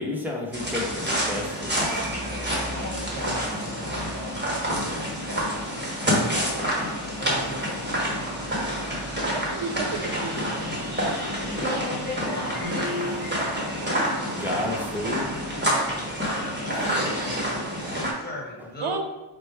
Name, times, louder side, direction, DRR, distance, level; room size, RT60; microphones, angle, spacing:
voice 1, 0.0-1.8 14.3-15.3, left 2 dB, 5° right, -2 dB, 0.9 m, -31 dB
sound 1, 0.5-18.1, equal, 20° right, 1.3 m, -28 dB
voice 2, 1.8-2.5 2.7-4.7 5.2-6.4 7.1-7.8 11.2-14.2 15.4-19.0, left 1 dB, 20° left, -5 dB, 1.5 m, -38 dB
voice 3, 9.3-10.5 16.7-17.1 18.8-19.0, right 5 dB, 85° right, 5 dB, 0.6 m, -33 dB
sound 2, 12.6-13.7, left 1 dB, 75° left, 1.0 m, -33 dB
4.9 x 2.2 x 4.5 m, 1.1 s
wide cardioid pair, 50°, 48 cm